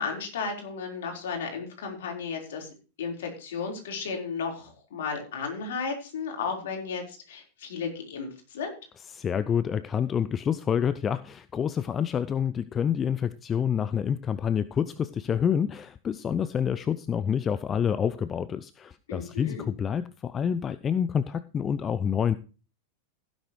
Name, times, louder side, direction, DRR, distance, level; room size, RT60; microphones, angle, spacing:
voice 1, 0.0-8.7 19.1-19.7, left 5 dB, 60° left, 2 dB, 4.5 m, -34 dB
voice 2, 9.1-22.4, left 8 dB, 25° left, 15 dB, 0.5 m, -28 dB
16.0 x 10.5 x 3.2 m, 0.35 s
figure-of-eight pair, 90°, 0 cm